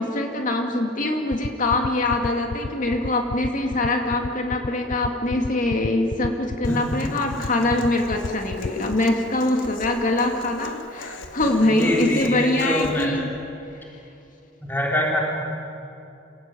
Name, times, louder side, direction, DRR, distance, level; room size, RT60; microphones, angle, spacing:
voice 1, 0.0-13.3, left 2 dB, 45° left, 3 dB, 2.3 m, -23 dB
sound 1, 1.3-9.0, left 4 dB, 60° left, 0.5 m, -29 dB
Human voice / Acoustic guitar, 6.6-13.1, left 2 dB, 85° left, 1.9 m, -39 dB
voice 2, 11.6-13.2 14.6-15.2, equal, 10° left, -2 dB, 3.7 m, -25 dB
27.5 x 17.5 x 9.2 m, 2.7 s
head